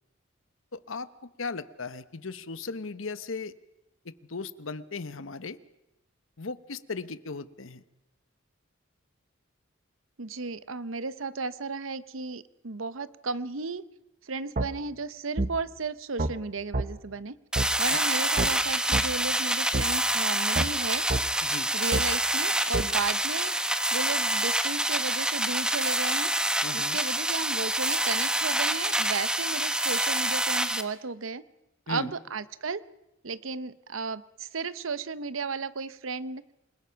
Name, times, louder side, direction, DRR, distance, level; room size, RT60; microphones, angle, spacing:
voice 1, 0.7-1.1 1.4-3.5 4.0-5.6 6.4-7.8 17.9-18.0 21.4-21.7 26.6-27.0 31.9-32.1, left 4 dB, 70° left, 14 dB, 1.0 m, -37 dB
voice 2, 10.2-13.8 14.2-17.3 17.8-21.0 21.7-23.5 23.9-26.3 26.7-31.4 31.9-32.8 33.2-36.4, right 4 dB, 75° right, 15 dB, 0.9 m, -34 dB
sound 1, 14.6-14.7 15.4-15.5 16.2-16.3 16.7-16.9 17.6-17.7 18.4-18.5 18.9-19.1 19.7-19.9 20.6-20.7 21.1-21.2 21.9-22.1 22.7-22.9, right 2 dB, 40° right, 1.0 m, -27 dB
sound 2, 17.5-30.8, right 1 dB, 5° right, 1.1 m, -27 dB
28.0 x 21.0 x 5.8 m, 0.87 s
head